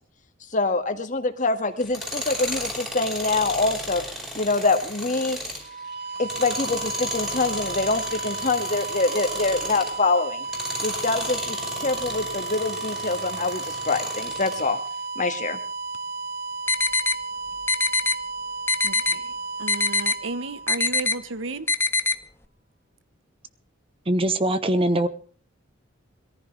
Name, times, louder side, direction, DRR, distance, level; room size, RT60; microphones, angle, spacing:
voice 1, 0.5-4.0 4.3-5.4 6.2-10.5 10.8-14.8 15.2-15.6, left 3 dB, 40° left, 7 dB, 2.0 m, -25 dB
Tools, 1.8-10.0 10.4-14.7, left 1 dB, 5° right, 5.0 m, -33 dB
sound 1, 5.5-21.3, right 3 dB, 55° right, 1.4 m, -34 dB
sound 2, 16.7-17.2 17.7-18.2 18.7-19.2 19.7-20.2 20.7-21.2 21.7-22.2, left 4 dB, 10° left, 0.8 m, -22 dB
voice 2, 18.8-19.3 19.6-21.7, right 3 dB, 70° right, 14 dB, 1.1 m, -33 dB
voice 3, 24.1-25.1, right 1 dB, 30° right, 12 dB, 1.0 m, -22 dB
22.0 x 14.5 x 3.4 m, 0.41 s
head